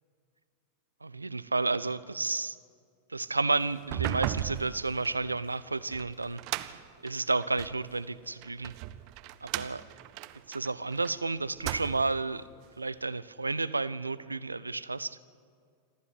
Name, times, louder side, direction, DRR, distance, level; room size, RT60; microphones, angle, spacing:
voice 1, 1.0-2.6 3.1-8.7 9.4-9.8 10.5-12.4 12.8-15.2, right 3 dB, 80° right, 17 dB, 0.7 m, -31 dB
sound 1, 3.8-7.8 8.4-11.1 11.5-12.3, right 14 dB, 45° right, 0.8 m, -37 dB
27.0 x 14.0 x 9.8 m, 2.1 s
figure-of-eight pair, 90°, 0 cm